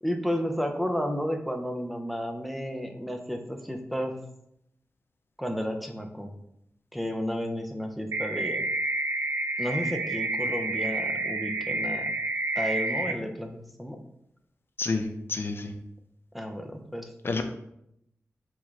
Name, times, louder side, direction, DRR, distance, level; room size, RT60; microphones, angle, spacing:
voice 1, 0.0-4.2 5.4-6.4 6.9-8.7 9.6-12.1 12.6-14.0 16.3-17.1, equal, ahead, 4 dB, 0.5 m, -32 dB
sound 1, 8.1-13.1, right 2 dB, 80° right, 0.4 m, -29 dB
voice 2, 14.8-15.7 17.2-17.4, left 3 dB, 50° left, 7 dB, 0.4 m, -29 dB
3.6 x 3.5 x 3.2 m, 0.77 s
wide cardioid pair, 95°, 5 cm